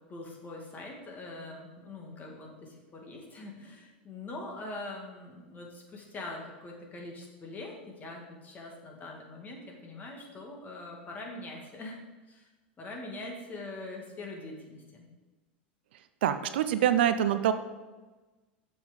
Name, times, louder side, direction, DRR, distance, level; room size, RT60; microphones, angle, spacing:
voice 1, 0.1-12.0 12.3-12.5 12.8-15.1, left 2 dB, 30° left, 0 dB, 2.3 m, -43 dB
voice 2, 16.2-17.5, right 10 dB, 70° right, 10 dB, 0.6 m, -25 dB
7.0 x 6.2 x 5.3 m, 1.2 s
hypercardioid pair, 95°, 6 cm